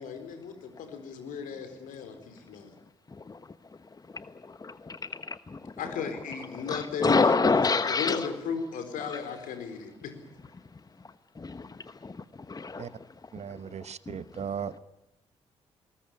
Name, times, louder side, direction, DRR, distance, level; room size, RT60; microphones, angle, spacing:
voice 1, 0.0-2.7 5.8-10.1, left 6 dB, 65° left, 8 dB, 4.2 m, -36 dB
voice 2, 4.6-5.6 6.7-8.3 11.4-11.7 12.0-12.2 12.5-12.9 14.1-14.2, left 4 dB, 25° left, 13 dB, 1.0 m, -27 dB
voice 3, 13.3-14.8, right 8 dB, 50° right, 16 dB, 1.1 m, -37 dB
21.0 x 19.0 x 9.9 m, 0.94 s
hypercardioid pair, 45°, 15 cm